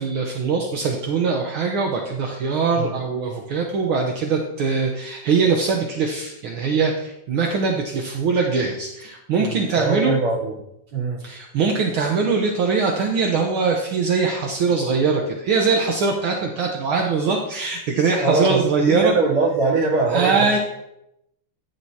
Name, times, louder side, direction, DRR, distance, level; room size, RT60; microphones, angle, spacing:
voice 1, 0.0-10.1 11.2-19.1 20.1-20.6, right 4 dB, 65° right, 1 dB, 1.4 m, -22 dB
voice 2, 9.4-10.6 10.9-11.2 18.2-20.6, right 3 dB, 85° right, -7 dB, 4.9 m, -22 dB
14.0 x 10.5 x 2.9 m, 0.84 s
omnidirectional pair, 3.6 m